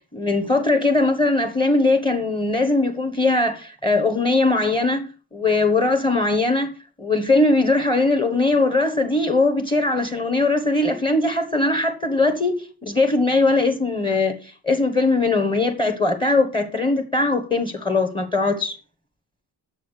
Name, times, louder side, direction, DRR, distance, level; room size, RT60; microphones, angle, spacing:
voice 1, 0.1-5.1 5.3-6.7 7.0-18.8, left 2 dB, 15° left, 1.2 m, -20 dB
9.4 x 7.4 x 6.4 m
cardioid pair, 150°, 39 cm